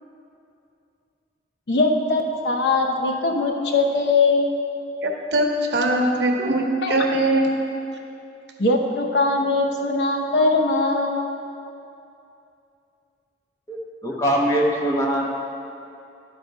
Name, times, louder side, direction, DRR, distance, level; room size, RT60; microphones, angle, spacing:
voice 1, 1.7-4.5 6.8-7.0 8.6-11.2, left 3 dB, 65° left, 2 dB, 0.8 m, -21 dB
voice 2, 5.0-7.5, right 1 dB, 65° right, 1 dB, 0.8 m, -21 dB
voice 3, 13.7-15.2, right 1 dB, 20° left, -3 dB, 1.0 m, -22 dB
11.0 x 4.1 x 4.7 m, 2.7 s
head